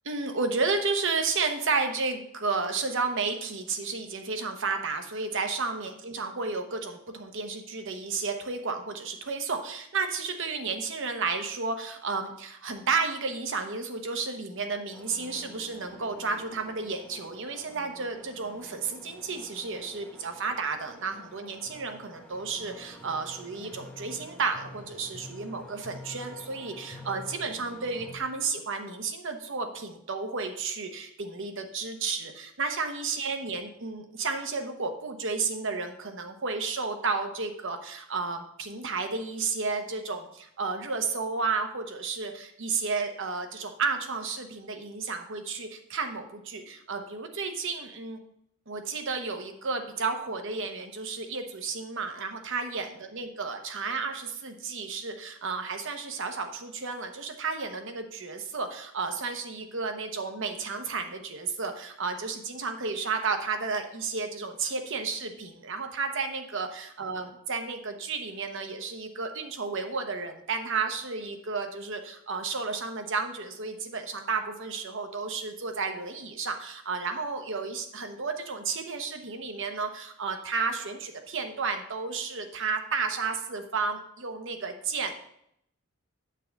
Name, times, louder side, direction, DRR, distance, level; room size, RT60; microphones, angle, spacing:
voice 1, 0.0-48.2 48.7-85.1, right 4 dB, 55° right, 6 dB, 0.9 m, -32 dB
sound 1, 14.9-28.2, equal, 5° left, 1.1 m, -48 dB
9.2 x 5.9 x 3.5 m, 0.73 s
head